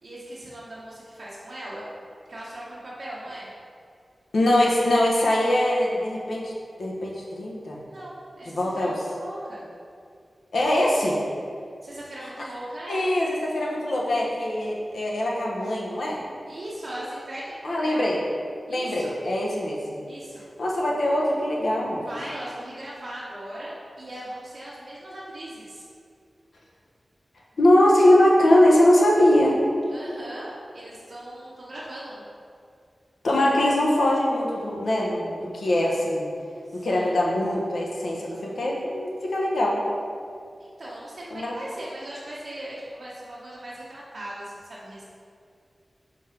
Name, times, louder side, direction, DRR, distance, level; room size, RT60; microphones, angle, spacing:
voice 1, 0.0-1.9 2.3-3.5 7.8-9.7 11.8-13.2 16.5-18.1 18.7-19.2 20.1-20.5 22.0-25.8 29.9-32.2 36.7-37.2 40.6-45.0, right 1 dB, 60° right, -9 dB, 1.1 m, -39 dB
voice 2, 4.3-6.5 6.8-7.8 8.5-8.9 10.5-11.2 12.9-16.2 17.6-18.2 18.7-20.0 20.6-22.1 27.6-29.6 33.2-36.3 36.7-39.8 41.3-41.5, left 1 dB, 80° left, -3 dB, 1.0 m, -22 dB
5.0 x 4.0 x 5.8 m, 2.3 s
wide cardioid pair, 85°, 0 cm